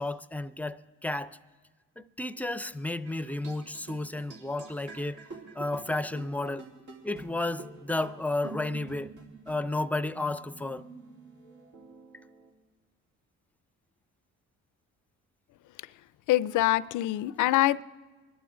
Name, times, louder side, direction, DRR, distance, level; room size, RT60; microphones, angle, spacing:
voice 1, 0.0-1.4 2.0-5.2 5.5-6.7 7.0-9.1 9.5-10.9, left 2 dB, 5° left, 0.4 m, -32 dB
sound 1, 3.0-12.5, right 3 dB, 85° right, 2.6 m, -48 dB
voice 2, 16.3-17.8, left 15 dB, 80° left, 0.5 m, -24 dB
24.5 x 12.0 x 3.8 m
cardioid pair, 90°, 30 cm